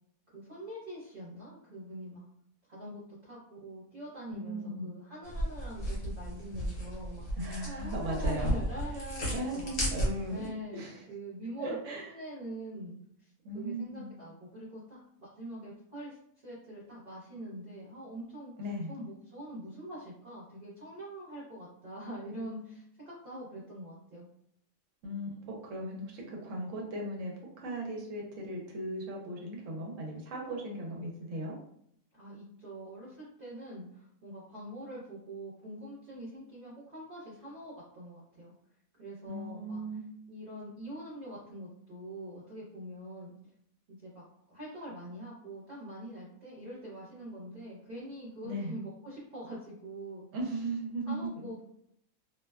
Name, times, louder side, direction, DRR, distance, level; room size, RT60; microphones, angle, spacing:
voice 1, 0.3-2.3 2.7-10.0 10.3-16.2 16.4-18.5 18.9-22.8 23.2-24.3 32.1-38.5 39.0-39.8 40.3-43.4 43.9-44.2 44.5-50.3 51.1-51.6, right 1 dB, 45° right, -8 dB, 0.9 m, -44 dB
voice 2, 4.3-4.9 7.4-8.5 9.3-10.9 11.6-12.1 13.4-14.1 18.6-18.9 25.0-27.3 27.6-31.5 39.3-40.2 48.4-48.7 50.3-51.2, right 1 dB, 70° right, -1 dB, 1.0 m, -37 dB
sound 1, 5.2-10.5, equal, 65° left, 1.2 m, -34 dB
2.6 x 2.2 x 2.2 m, 0.70 s
omnidirectional pair, 1.5 m